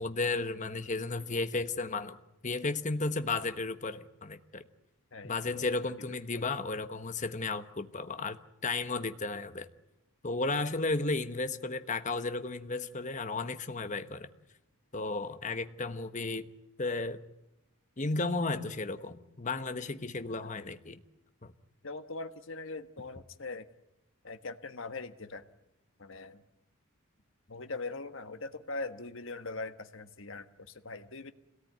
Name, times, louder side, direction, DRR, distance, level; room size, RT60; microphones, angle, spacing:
voice 1, 0.0-2.2 2.4-4.6 5.2-9.7 10.2-14.3 14.9-16.5 16.8-17.2 18.0-21.0 21.4-21.5, left 3 dB, 35° left, 10 dB, 1.2 m, -34 dB
voice 2, 5.1-5.7 6.3-6.5 20.3-20.5 21.8-23.7 24.2-25.4 26.0-26.4 27.5-31.3, left 3 dB, 60° left, 9 dB, 1.4 m, -41 dB
27.0 x 18.0 x 9.3 m, 0.90 s
head